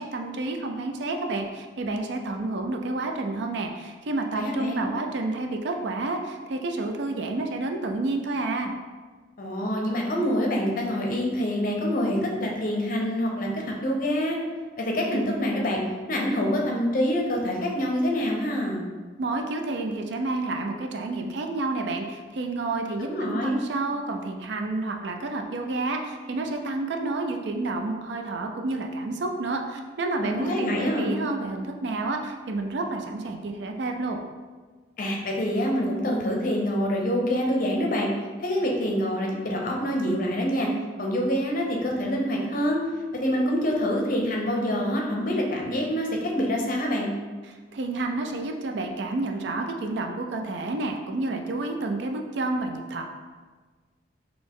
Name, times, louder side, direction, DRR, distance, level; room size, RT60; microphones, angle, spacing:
voice 1, 0.0-8.7 19.2-34.2 47.4-53.0, right 2 dB, 65° right, 3 dB, 0.4 m, -30 dB
voice 2, 4.3-4.9 9.4-14.4 14.8-15.8 16.1-18.8 23.0-23.6 30.2-31.1 35.0-38.1 38.4-40.7 41.0-42.8 43.1-47.1, equal, 45° left, 0 dB, 0.7 m, -26 dB
4.1 x 2.8 x 3.6 m, 1.4 s
head